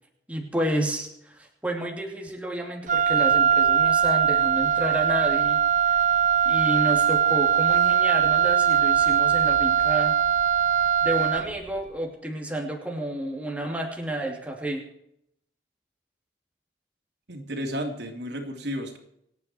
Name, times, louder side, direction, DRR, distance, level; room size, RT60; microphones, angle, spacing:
voice 1, 0.3-5.6 5.9-6.0 6.4-10.1 11.0-14.8, right 1 dB, 10° right, 0 dB, 2.8 m, -30 dB
Wind instrument woodwind instrument, 2.9-11.6, right 8 dB, 45° right, 0.6 m, -21 dB
voice 2, 17.3-19.0, equal, 80° right, 3 dB, 3.3 m, -32 dB
27.0 x 9.6 x 4.5 m, 0.74 s
head